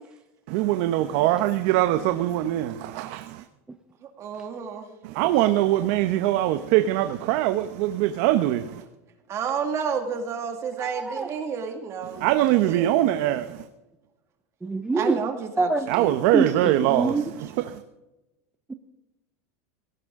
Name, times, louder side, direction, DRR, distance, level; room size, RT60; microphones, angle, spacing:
voice 1, 0.5-3.4 5.0-8.8 12.2-13.6 15.9-17.8, right 14 dB, 60° right, 0.9 m, -23 dB
voice 2, 4.2-4.9 9.3-12.2 12.7-12.9 14.9-16.1, right 6 dB, 35° right, 2.1 m, -30 dB
voice 3, 14.7-15.0 15.6-15.8 16.3-16.4 17.0-17.2, right 3 dB, 10° right, 0.7 m, -22 dB
19.0 x 16.5 x 3.7 m
supercardioid pair, 140°, 8 cm